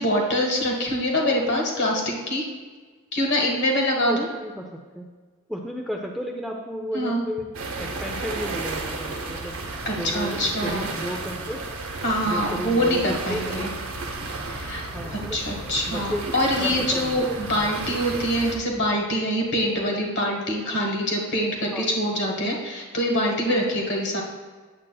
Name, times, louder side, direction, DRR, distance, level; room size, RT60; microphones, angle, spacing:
voice 1, 0.0-2.5 3.1-4.3 6.9-7.2 9.8-10.9 12.0-13.7 14.5-14.8 15.3-24.2, equal, 50° left, 0 dB, 1.3 m, -24 dB
voice 2, 4.0-5.1 5.5-7.5 7.8-9.5 9.9-11.6 12.2-13.7 14.9-15.4 15.9-16.2 16.6-17.2 17.5-17.7 21.7-21.9, equal, ahead, 0 dB, 0.4 m, -33 dB
sound 1, 7.5-18.6, right 3 dB, 75° right, 0.9 m, -33 dB
8.8 x 7.3 x 2.3 m, 1.4 s
head